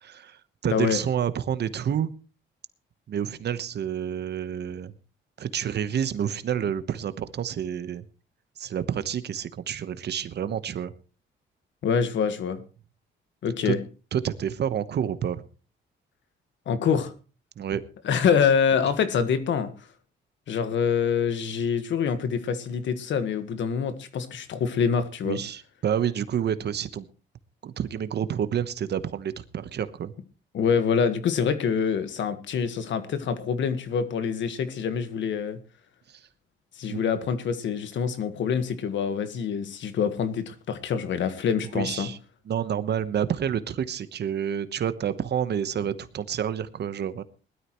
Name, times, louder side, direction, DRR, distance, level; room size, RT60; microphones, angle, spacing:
voice 1, 0.0-2.1 3.1-4.9 5.4-8.0 8.6-10.9 13.6-13.7 14.1-15.4 17.6-17.8 25.2-27.1 27.6-30.1 36.9-37.0 41.7-42.2 42.5-47.2, right 9 dB, 60° right, 13 dB, 1.1 m, -29 dB
voice 2, 0.7-1.0 11.8-12.6 13.4-13.8 16.6-17.1 18.0-19.7 20.5-25.4 30.5-35.6 36.8-42.1, left 6 dB, 70° left, 11 dB, 1.6 m, -25 dB
20.0 x 13.0 x 3.1 m, 0.35 s
cardioid pair, 90°, 20 cm